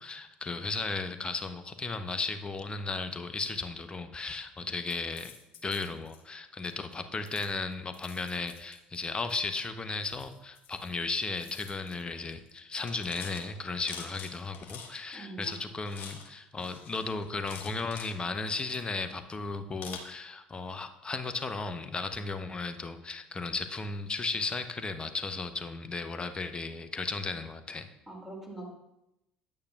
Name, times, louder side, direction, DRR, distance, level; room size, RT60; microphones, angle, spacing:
voice 1, 0.0-5.3 5.6-27.9, left 3 dB, 25° left, 9 dB, 0.7 m, -35 dB
sound 1, 4.9-6.2 6.6-6.9 7.3-9.3 10.0-11.0 11.2-12.0 12.3-12.5 12.8-15.1 15.4-16.3 16.6-18.1 18.5-19.2 19.8-20.0, left 6 dB, 50° left, 1.0 m, -47 dB
voice 2, 15.1-15.6 28.1-28.7, right 2 dB, 5° right, -2 dB, 2.3 m, -43 dB
9.6 x 8.6 x 2.3 m, 0.88 s
figure-of-eight pair, 60°, 4 cm